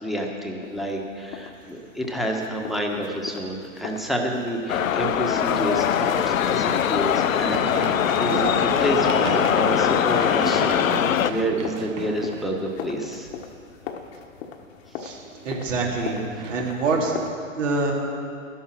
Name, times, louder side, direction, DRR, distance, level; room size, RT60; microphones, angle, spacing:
voice 1, 0.0-7.9 8.2-13.3, equal, ahead, 0 dB, 1.4 m, -29 dB
sound 1, 0.6-17.3, left 7 dB, 50° left, 1.3 m, -39 dB
sound 2, 4.7-11.3, left 9 dB, 80° left, 0.6 m, -22 dB
Run, 7.5-13.3 15.2-16.7, right 8 dB, 35° right, 0.8 m, -35 dB
voice 2, 15.4-16.2 16.5-17.1 17.6-17.9, right 3 dB, 65° right, -2 dB, 3.1 m, -25 dB
12.5 x 11.5 x 6.2 m, 2.4 s
hypercardioid pair, 115°, 40 cm